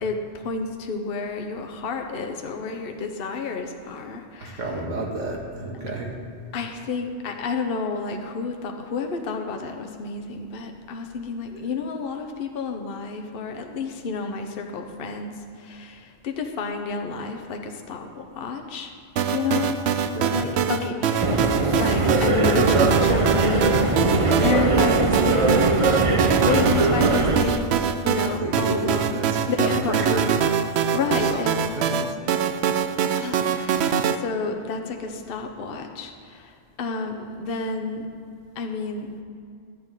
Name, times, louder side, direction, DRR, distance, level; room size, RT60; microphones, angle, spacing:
voice 1, 0.0-4.7 6.5-18.9 19.3-19.8 20.3-21.3 21.7-30.6 30.9-32.1 33.1-38.1 38.6-39.2, left 4 dB, 50° left, 4 dB, 1.0 m, -30 dB
voice 2, 4.4-6.1 20.1-20.4 28.3-30.3 30.9-31.4 31.7-31.9, right 2 dB, 80° right, -1 dB, 2.1 m, -31 dB
sound 1, 19.2-34.2, right 7 dB, 65° right, 0.8 m, -24 dB
sound 2, 21.2-27.4, right 2 dB, 30° right, 0.7 m, -21 dB
11.5 x 6.0 x 8.8 m, 2.4 s
omnidirectional pair, 1.3 m